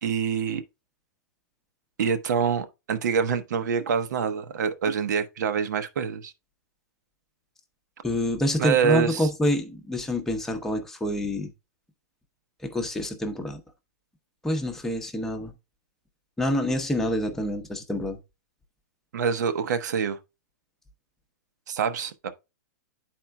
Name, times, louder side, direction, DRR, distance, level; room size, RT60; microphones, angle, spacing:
voice 1, 0.0-0.6 2.0-6.3 8.6-9.3 19.1-20.2 21.7-22.3, right 7 dB, 75° right, 0.9 m, -26 dB
voice 2, 8.0-11.5 12.6-13.6 14.4-15.5 16.4-18.2, left 1 dB, 5° left, 0.8 m, -27 dB
11.5 x 4.4 x 2.2 m
supercardioid pair, 165°, 10 cm